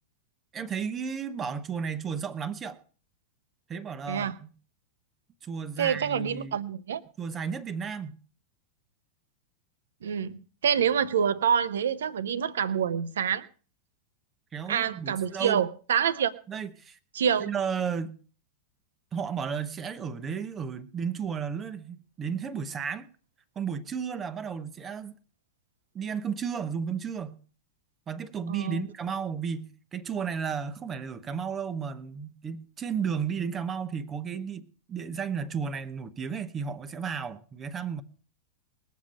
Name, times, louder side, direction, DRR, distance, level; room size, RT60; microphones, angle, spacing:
voice 1, 0.5-2.8 3.7-4.5 5.4-6.6 7.2-8.2 14.5-15.6 16.5-17.0 17.4-18.2 19.1-23.1 23.6-25.2 25.9-27.4 28.1-38.0, right 6 dB, 25° right, 0.9 m, -33 dB
voice 2, 5.8-7.0 10.0-13.4 14.7-16.3 17.1-17.5 28.5-28.8, right 8 dB, 65° right, 0.8 m, -27 dB
20.0 x 7.4 x 5.3 m
figure-of-eight pair, 90°, 0 cm